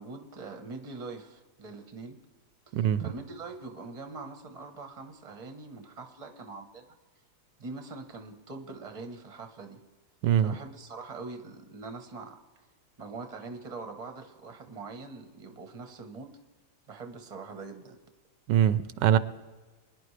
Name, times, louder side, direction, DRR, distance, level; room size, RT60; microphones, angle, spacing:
voice 1, 0.0-2.2 2.7-6.9 7.6-9.8 10.4-12.6 13.0-16.3 16.9-18.0, right 3 dB, 25° right, 6 dB, 1.0 m, -43 dB
voice 2, 2.7-3.1 10.2-10.6 18.5-19.2, right 10 dB, 90° right, 15 dB, 1.3 m, -23 dB
22.5 x 10.5 x 3.3 m, 1.3 s
omnidirectional pair, 1.8 m